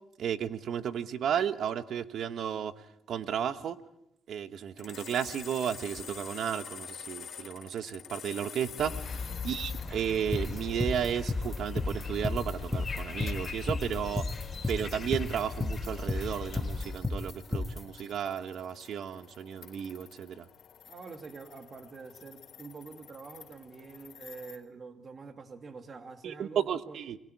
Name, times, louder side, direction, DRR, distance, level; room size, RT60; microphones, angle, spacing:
voice 1, 0.2-2.7 3.1-3.8 4.3-14.2 14.7-20.4 26.2-27.2, right 8 dB, 70° right, 11 dB, 1.3 m, -33 dB
sound 1, 4.8-24.6, left 8 dB, 60° left, 3.5 m, -49 dB
sound 2, 8.8-17.0, left 4 dB, 40° left, 4.8 m, -39 dB
voice 2, 9.1-9.5 20.9-27.0, right 4 dB, 40° right, 6 dB, 2.5 m, -46 dB
sound 3, 10.3-17.8, left 3 dB, 15° left, 1.5 m, -32 dB
30.0 x 22.5 x 4.8 m, 0.79 s
cardioid pair, 90°, 0 cm